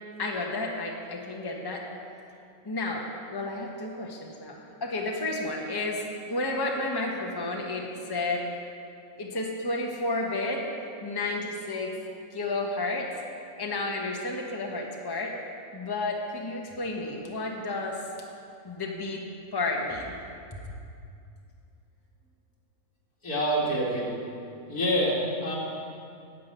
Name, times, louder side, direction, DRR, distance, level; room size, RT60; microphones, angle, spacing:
voice 1, 0.2-1.8 2.6-8.4 9.2-10.6 11.0-11.9 12.3-13.1 13.6-15.3 15.7-18.0 18.6-19.2 19.5-20.1 20.5-20.6, left 2 dB, 15° left, 0 dB, 1.1 m, -31 dB
voice 2, 23.2-24.1 24.7-25.6, equal, 80° left, -5 dB, 3.0 m, -26 dB
9.7 x 7.5 x 9.0 m, 2.5 s
omnidirectional pair, 1.6 m